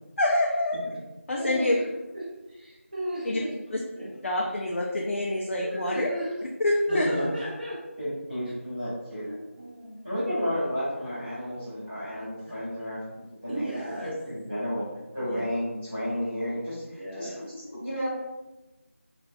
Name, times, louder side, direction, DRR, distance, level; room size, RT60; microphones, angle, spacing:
voice 1, 0.2-0.8 1.3-1.8 3.2-3.4 3.7-3.8 4.2-6.1 6.6-7.1, left 1 dB, 65° left, -2 dB, 0.4 m, -26 dB
voice 2, 1.3-1.9 2.1-3.5 4.0-4.1 5.6-6.3 6.9-7.8 9.2-10.0 13.5-14.1 15.2-15.4 17.0-17.4, right 1 dB, 35° right, -6 dB, 0.8 m, -35 dB
voice 3, 6.9-7.3 8.0-9.3 10.0-14.9 15.1-18.1, equal, 5° right, -23 dB, 0.5 m, -32 dB
2.5 x 2.3 x 2.2 m, 1.0 s
figure-of-eight pair, 175°, 8 cm